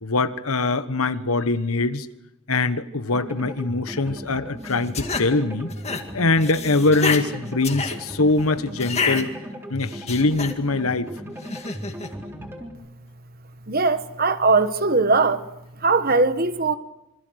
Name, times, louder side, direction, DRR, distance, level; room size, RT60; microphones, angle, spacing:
voice 1, 0.0-2.1 2.5-5.7 6.1-9.3 9.7-11.1, left 3 dB, 80° left, 1.3 m, -22 dB
sound 1, 3.1-12.7, equal, 10° right, 3.7 m, -37 dB
sound 2, 4.7-5.3 5.7-6.0 6.3-7.2 7.6-8.0 8.8-9.2 9.8-10.5 11.4-12.1, left 5 dB, 30° left, 2.2 m, -28 dB
voice 2, 13.7-15.5 15.8-16.8, right 3 dB, 45° right, 1.3 m, -20 dB
27.0 x 25.5 x 6.5 m
head